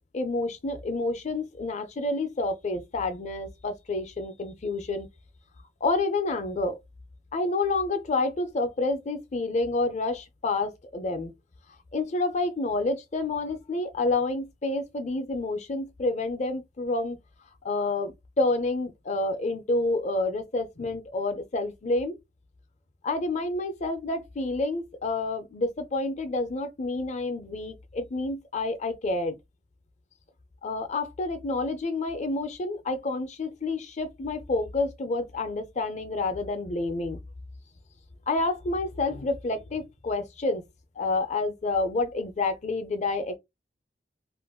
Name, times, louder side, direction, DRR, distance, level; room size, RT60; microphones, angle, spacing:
voice 1, 0.1-5.1 5.8-6.8 7.3-11.3 11.9-17.2 17.6-22.1 23.0-29.4 30.6-37.2 38.3-40.6 41.0-43.4, left 2 dB, 40° left, 0.5 m, -29 dB
2.5 x 2.2 x 3.5 m
head